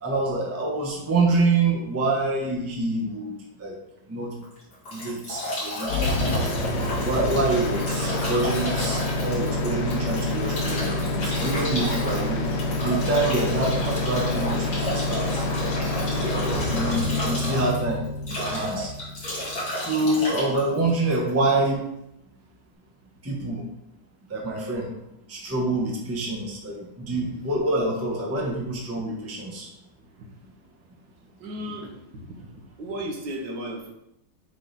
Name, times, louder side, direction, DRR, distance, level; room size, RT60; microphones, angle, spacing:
voice 1, 0.0-3.8 4.1-4.3 4.9-6.0 6.8-12.5 12.8-15.4 16.1-18.0 18.3-18.9 19.8-21.9 23.2-23.6 24.3-24.9 25.3-29.7, right 2 dB, 10° right, -1 dB, 0.7 m, -26 dB
Bathtub (filling or washing) / Drip / Trickle dribble, 4.4-21.7, left 1 dB, 60° left, 2.7 m, -32 dB
sound 1, 5.9-19.8, left 2 dB, 80° left, 1.6 m, -27 dB
voice 2, 31.4-32.0 32.4-32.5 32.8-33.9, right 1 dB, 80° right, 1 dB, 1.7 m, -34 dB
7.3 x 3.3 x 4.0 m, 0.83 s
omnidirectional pair, 1.9 m